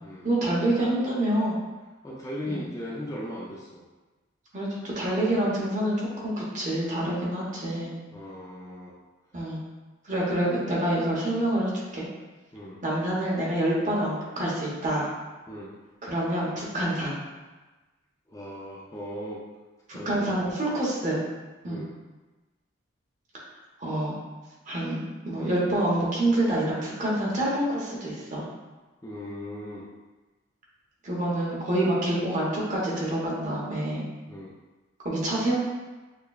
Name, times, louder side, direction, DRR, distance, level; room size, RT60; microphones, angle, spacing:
voice 1, 0.2-1.6 2.5-2.6 4.5-7.9 9.3-9.6 10.0-12.1 12.8-15.1 16.0-17.2 19.9-21.2 21.6-21.8 23.8-24.2 24.7-28.5 31.0-34.1 35.0-35.6, right 1 dB, 35° right, -5 dB, 0.9 m, -27 dB
voice 2, 2.0-3.9 8.1-8.9 10.4-10.6 12.5-12.8 15.5-15.7 18.3-19.4 19.9-20.3 21.6-21.9 29.0-29.9 34.3-34.5, left 1 dB, 15° left, -5 dB, 0.4 m, -38 dB
6.5 x 2.2 x 2.3 m, 1.2 s
head